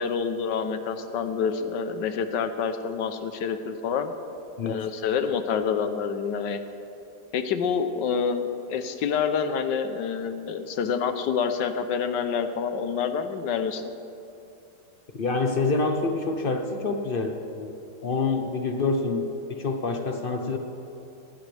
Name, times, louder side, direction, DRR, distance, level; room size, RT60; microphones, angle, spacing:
voice 1, 0.0-4.1 4.6-6.6 7.3-13.9, left 6 dB, 80° left, 9 dB, 1.5 m, -27 dB
voice 2, 15.2-17.7 18.0-20.6, left 3 dB, 40° left, 5 dB, 0.9 m, -27 dB
18.5 x 15.5 x 3.4 m, 2.7 s
omnidirectional pair, 1.9 m